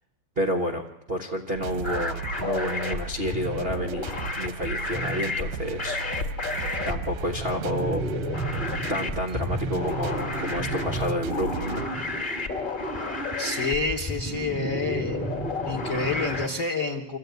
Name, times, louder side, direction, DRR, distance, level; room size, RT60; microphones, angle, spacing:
voice 1, 0.4-6.0 6.8-8.0 8.9-11.8, equal, 70° right, 3 dB, 0.5 m, -30 dB
sound 1, 1.5-15.6 16.2-16.3 16.5-16.6, right 6 dB, 85° right, 2.4 m, -37 dB
sound 2, 1.8-16.5, left 2 dB, 25° left, 1.2 m, -31 dB
voice 2, 13.4-15.2 15.6-17.2, left 3 dB, 50° left, 4 dB, 1.0 m, -28 dB
25.5 x 14.5 x 9.3 m, 0.93 s
omnidirectional pair, 3.3 m